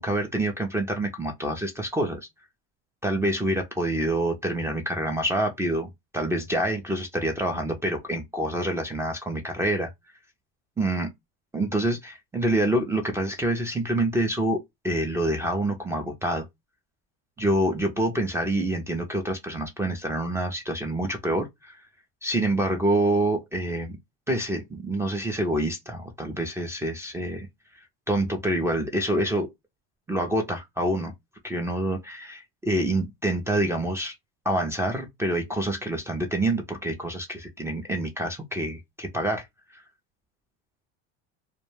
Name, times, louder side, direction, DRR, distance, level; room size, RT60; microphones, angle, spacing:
voice 1, 0.0-2.2 3.0-9.9 10.8-11.1 11.5-16.5 17.4-21.8 22.2-24.0 24.3-27.5 28.1-29.5 30.1-31.1 31.4-34.1 34.5-39.4 39.7-39.8, right 1 dB, 10° right, 0.3 m, -27 dB
2.2 x 2.1 x 3.1 m
supercardioid pair, 130°, 32 cm